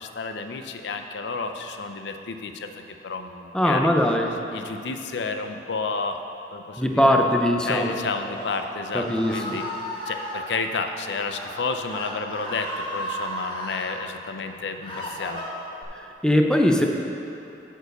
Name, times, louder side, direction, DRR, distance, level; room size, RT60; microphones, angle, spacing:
voice 1, 0.0-3.9 4.5-6.2 6.5-7.2 7.7-9.6 10.1-15.4, left 4 dB, 80° left, 7 dB, 0.5 m, -31 dB
voice 2, 3.5-4.4 6.8-7.9 8.9-9.4 15.9-16.9, left 1 dB, 5° left, 2 dB, 0.5 m, -21 dB
Screaming, 8.0-10.4 11.2-11.5 11.8-13.9 14.5-15.8, equal, 30° left, 1.5 m, -34 dB
9.0 x 4.7 x 6.6 m, 2.9 s
head